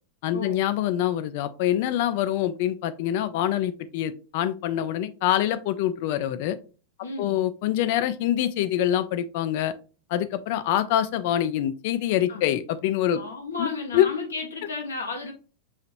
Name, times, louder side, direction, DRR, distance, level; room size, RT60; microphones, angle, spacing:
voice 1, 0.2-6.6 7.2-9.7 10.1-13.2 13.6-14.1, left 11 dB, 50° left, 12 dB, 0.4 m, -25 dB
voice 2, 7.0-7.4 12.3-12.4 13.1-15.3, left 3 dB, 75° left, 1 dB, 1.0 m, -33 dB
5.6 x 2.9 x 2.5 m, 0.35 s
figure-of-eight pair, 90°, 0 cm